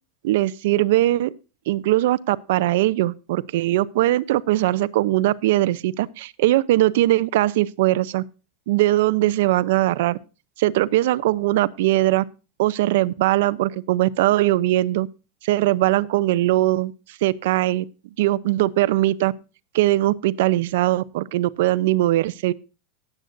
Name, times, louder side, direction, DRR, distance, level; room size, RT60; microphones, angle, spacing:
voice 1, 0.2-1.3 1.7-8.2 8.7-10.2 10.6-12.2 12.6-15.1 15.4-16.9 17.2-17.9 18.2-19.3 19.7-22.5, right 16 dB, 65° right, 0.6 m, -20 dB
18.0 x 8.0 x 2.6 m
supercardioid pair, 165°, 0 cm